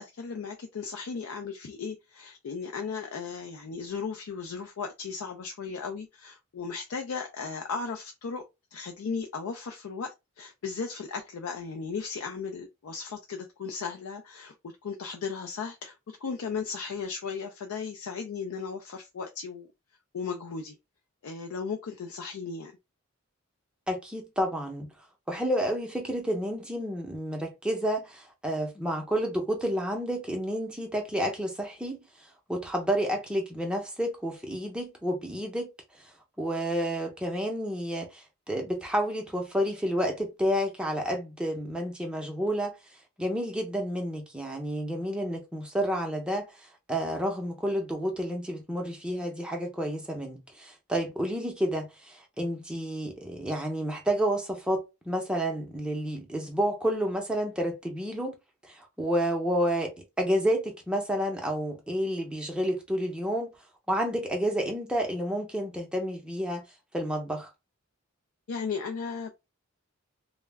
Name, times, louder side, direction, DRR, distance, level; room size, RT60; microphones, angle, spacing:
voice 1, 0.0-8.4 8.7-14.5 14.8-19.7 20.1-20.8 21.2-22.7 68.5-69.4, left 5 dB, 75° left, 0.4 m, -36 dB
voice 2, 23.9-24.9 25.3-32.0 32.5-35.7 36.4-42.7 43.2-46.5 46.9-58.3 58.6-59.9 60.2-63.5 63.9-66.6 66.9-67.5, equal, 5° right, 0.5 m, -30 dB
2.2 x 2.0 x 3.3 m
head